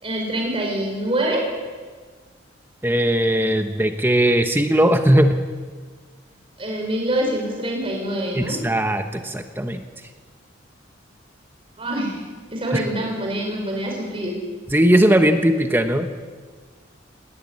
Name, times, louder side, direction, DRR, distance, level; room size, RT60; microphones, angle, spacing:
voice 1, 0.0-1.4 6.6-8.6 11.8-12.2 12.5-14.3, right 1 dB, 30° right, 0 dB, 5.0 m, -25 dB
voice 2, 2.8-5.4 8.3-9.8 12.7-12.8 14.7-16.1, right 1 dB, 10° right, 6 dB, 1.1 m, -18 dB
19.5 x 18.0 x 9.8 m, 1.5 s
head